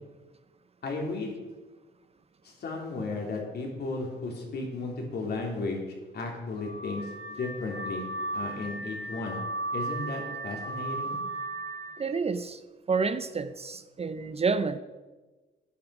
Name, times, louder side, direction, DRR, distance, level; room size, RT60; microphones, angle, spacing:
voice 1, 0.8-1.3 2.4-5.8 6.1-8.1 8.3-9.4 9.7-11.2, left 3 dB, 55° left, 0 dB, 3.3 m, -34 dB
Car / Alarm, 6.6-12.0, right 2 dB, 35° left, 3.6 m, -36 dB
voice 2, 12.0-12.6 12.9-14.8, right 4 dB, 30° right, 11 dB, 0.6 m, -29 dB
12.0 x 9.5 x 4.9 m, 1.2 s
cardioid pair, 90°, 20 cm